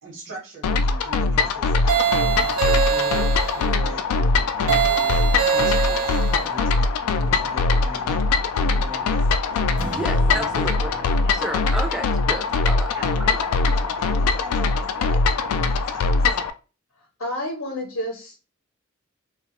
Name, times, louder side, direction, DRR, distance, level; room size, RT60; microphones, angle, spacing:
voice 1, 0.0-2.0 2.2-6.9 7.2-9.6 10.3-11.3 11.9-12.1 12.9-13.1 13.4-16.4, right 1 dB, 60° right, -2 dB, 0.9 m, -40 dB
sound 1, 0.6-16.5, left 3 dB, 90° left, 0.3 m, -22 dB
sound 2, 1.9-3.6 4.7-6.5, right 7 dB, 85° right, 0.7 m, -23 dB
sound 3, 9.8-12.4, right 3 dB, 40° right, 0.6 m, -39 dB
voice 2, 9.9-10.9 11.3-12.9, right 1 dB, 5° right, 2 dB, 0.4 m, -31 dB
voice 3, 17.2-18.3, left 1 dB, 60° left, 0 dB, 0.7 m, -29 dB
2.8 x 2.2 x 2.9 m, 0.32 s
head